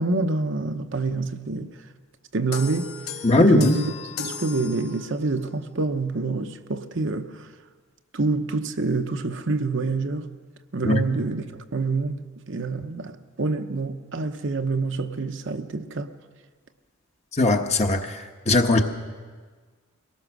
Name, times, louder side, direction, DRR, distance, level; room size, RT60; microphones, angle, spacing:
voice 1, 0.0-1.7 2.3-3.0 3.4-7.5 8.1-10.3 10.7-16.1, right 3 dB, 60° right, 0.9 m, -27 dB
sound 1, 2.5-5.4, left 5 dB, 90° left, 1.6 m, -36 dB
voice 2, 3.2-3.7 10.8-11.0 17.4-18.0 18.5-18.8, left 2 dB, 30° left, 1.1 m, -18 dB
23.0 x 18.5 x 6.2 m
head